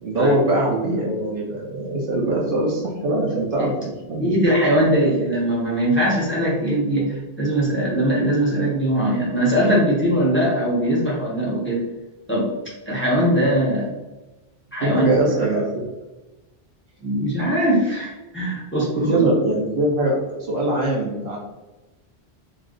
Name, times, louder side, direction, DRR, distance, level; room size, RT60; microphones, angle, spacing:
voice 1, 0.0-4.3 13.1-13.2 14.8-15.9 19.0-21.4, right 2 dB, 60° right, -3 dB, 0.7 m, -22 dB
voice 2, 4.1-11.9 12.3-12.5 12.9-13.9 14.7-15.1 15.5-15.6 17.0-19.2, right 1 dB, 10° left, -6 dB, 0.8 m, -21 dB
2.4 x 2.2 x 3.7 m, 1.1 s
omnidirectional pair, 1.1 m